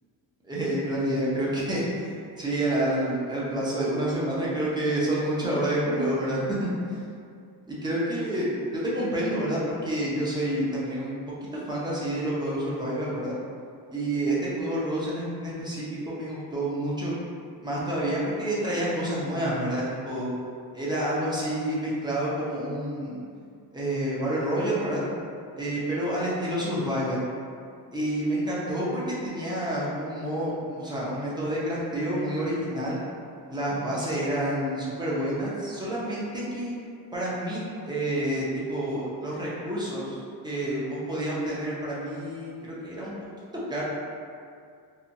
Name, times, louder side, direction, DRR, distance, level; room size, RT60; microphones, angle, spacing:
voice 1, 0.4-7.0 7.7-8.5 8.7-11.1 11.7-13.4 13.9-17.1 17.6-20.3 20.7-23.2 23.7-25.0 25.6-27.2 27.9-33.0 33.5-36.7 37.1-43.1 43.7-43.8, right 1 dB, 10° right, -7 dB, 0.6 m, -28 dB
2.8 x 2.3 x 2.6 m, 2.3 s
cardioid pair, 120°, 40 cm